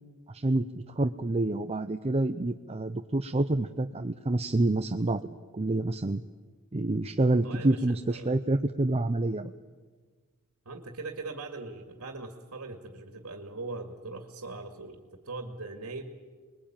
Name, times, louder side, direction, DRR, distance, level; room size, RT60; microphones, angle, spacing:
voice 1, 0.3-0.7 1.0-5.2 5.5-6.2 6.7-9.5, right 2 dB, 30° right, 8 dB, 0.7 m, -27 dB
voice 2, 7.4-8.4 10.7-16.1, right 3 dB, 75° right, 4 dB, 2.2 m, -40 dB
26.5 x 21.5 x 9.0 m, 1.5 s
head